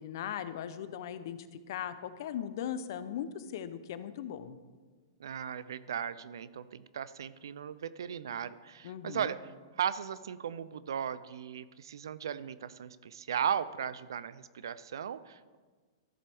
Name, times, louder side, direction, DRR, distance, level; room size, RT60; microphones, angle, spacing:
voice 1, 0.0-1.4 1.7-4.6 8.8-9.3, left 9 dB, 60° left, 12 dB, 0.6 m, -38 dB
voice 2, 5.2-9.5 9.8-15.6, right 8 dB, 80° right, 17 dB, 0.5 m, -37 dB
13.5 x 7.5 x 3.5 m, 1.4 s
hypercardioid pair, 135°, 2 cm